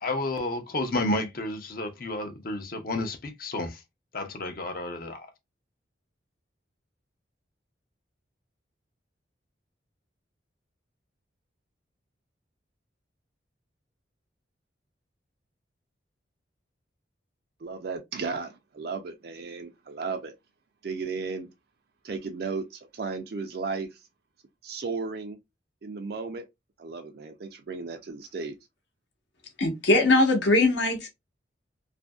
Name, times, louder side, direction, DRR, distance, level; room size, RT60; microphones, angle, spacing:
voice 1, 0.0-3.8 4.1-5.3, left 2 dB, 50° left, 0.6 m, -31 dB
voice 2, 17.6-20.3 20.8-21.5 22.0-24.0 24.6-25.4 25.8-26.5 26.8-28.6, right 4 dB, 55° right, 0.4 m, -34 dB
voice 3, 29.6-31.1, left 2 dB, 70° left, 0.9 m, -21 dB
2.7 x 2.5 x 2.2 m
head